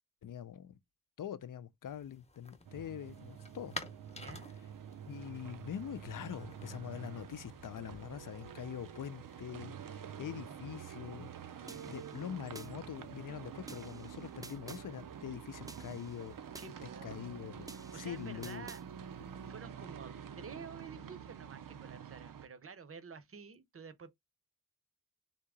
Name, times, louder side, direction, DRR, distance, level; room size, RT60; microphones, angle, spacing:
voice 1, 0.2-0.8 1.2-3.8 5.1-11.3 11.9-16.4 17.0-18.7, left 9 dB, 80° left, 0.5 m, -44 dB
sound 1, 1.8-19.5, left 2 dB, 20° left, 0.8 m, -55 dB
sound 2, 2.6-22.5, right 8 dB, 90° right, 0.6 m, -48 dB
voice 2, 4.1-4.5 16.6-18.8 19.5-24.1, right 5 dB, 45° right, 0.6 m, -50 dB
sound 3, 11.7-12.7 13.7-14.8 15.7-16.7 17.7-18.8, right 2 dB, 10° right, 0.4 m, -52 dB
3.6 x 2.8 x 4.7 m
wide cardioid pair, 115°, 32 cm